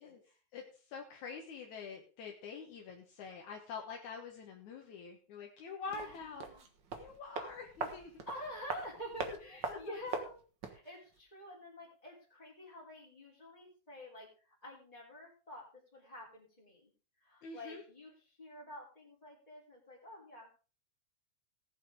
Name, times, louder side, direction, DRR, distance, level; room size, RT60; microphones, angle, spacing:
voice 1, 0.0-0.4 5.9-6.7 8.3-10.4 10.6-15.6 15.9-16.9 17.2-20.5, left 1 dB, 10° left, -5 dB, 3.1 m, -49 dB
voice 2, 0.5-6.4 6.9-8.2 9.3-9.4 9.6-10.0 17.4-17.8, left 5 dB, 70° left, 1 dB, 2.7 m, -46 dB
sound 1, 5.9-10.9 11.1-11.2, right 4 dB, 45° right, 1.8 m, -42 dB
18.0 x 8.1 x 3.7 m, 0.37 s
omnidirectional pair, 3.6 m